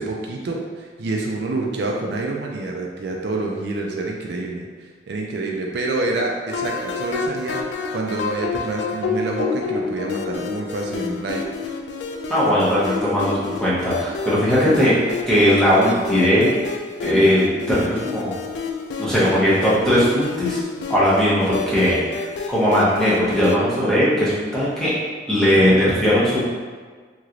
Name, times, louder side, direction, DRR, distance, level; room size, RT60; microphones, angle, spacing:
voice 1, 0.0-11.4 14.6-15.0 25.6-26.0, right 2 dB, 65° right, 0 dB, 0.4 m, -27 dB
sound 1, 6.5-23.6, left 5 dB, 75° left, 0.3 m, -29 dB
voice 2, 12.3-14.9 15.3-16.5 17.0-18.4 19.0-20.6 20.9-22.0 22.5-24.9 25.3-26.4, equal, 5° left, -9 dB, 0.8 m, -18 dB
3.0 x 2.9 x 2.5 m, 1.5 s
head